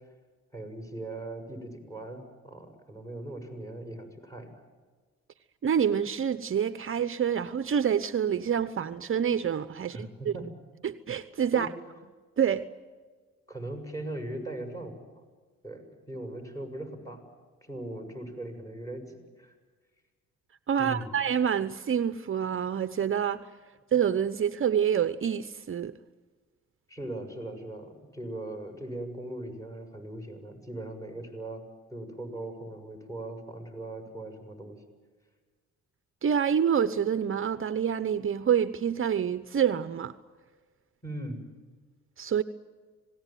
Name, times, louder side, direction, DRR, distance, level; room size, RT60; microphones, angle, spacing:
voice 1, 0.5-4.5 9.9-10.5 11.5-11.7 13.5-14.9 15.6-15.8 16.1-17.2 17.6-19.5 20.8-21.2 26.9-31.6 31.9-34.8 41.0-41.4, right 1 dB, 10° left, 7.3 m, -39 dB
voice 2, 5.6-10.3 10.8-11.7 12.4-12.7 20.7-23.5 23.9-26.0 36.2-40.1 42.2-42.4, right 8 dB, 45° right, 1.0 m, -27 dB
26.5 x 19.0 x 9.2 m
cardioid pair, 90°, 30 cm